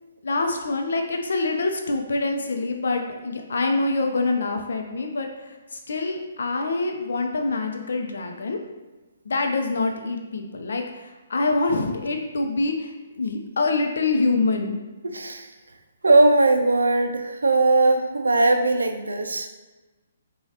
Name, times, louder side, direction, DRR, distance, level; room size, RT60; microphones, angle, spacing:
voice 1, 0.2-8.6 9.2-14.8, left 3 dB, 70° left, 3 dB, 0.6 m, -25 dB
voice 2, 15.0-15.5 16.0-19.5, right 2 dB, 90° right, 6 dB, 0.4 m, -19 dB
4.8 x 2.3 x 2.8 m, 1.2 s
hypercardioid pair, 140°, 0 cm